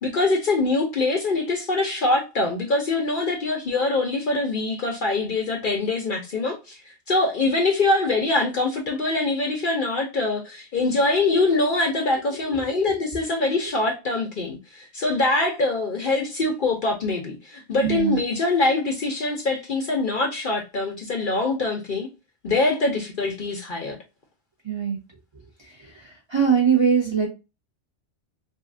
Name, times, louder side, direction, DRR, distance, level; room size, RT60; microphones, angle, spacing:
voice 1, 0.0-22.1 22.4-24.0, left 2 dB, 55° left, 0.7 m, -24 dB
voice 2, 12.4-12.9 17.8-18.2 24.6-25.0 25.6-27.3, right 7 dB, 30° right, 0.7 m, -23 dB
3.0 x 2.7 x 2.4 m
omnidirectional pair, 1.2 m